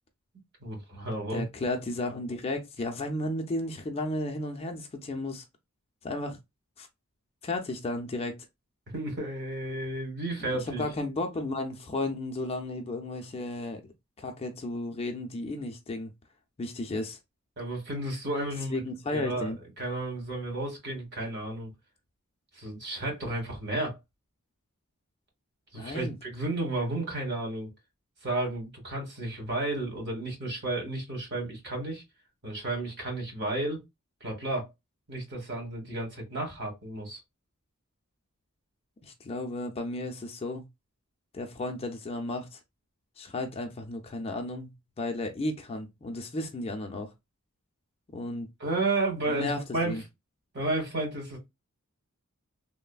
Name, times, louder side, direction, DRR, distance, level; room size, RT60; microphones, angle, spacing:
voice 1, 0.6-1.4 8.9-10.8 17.6-18.8 19.1-21.7 22.5-24.0 25.7-27.7 28.2-32.0 32.4-33.8 34.2-34.7 35.1-37.2 48.6-50.0 50.5-51.4, right 2 dB, 55° right, 1.4 m, -32 dB
voice 2, 1.3-5.4 6.0-6.4 6.8-6.9 7.4-8.4 10.4-13.8 14.2-16.1 16.6-17.2 18.7-19.6 25.8-26.2 39.0-40.7 41.3-42.6 43.2-44.7 45.0-47.1 48.1-48.5 49.3-50.0, left 2 dB, 25° left, 0.4 m, -33 dB
3.2 x 2.0 x 2.3 m
head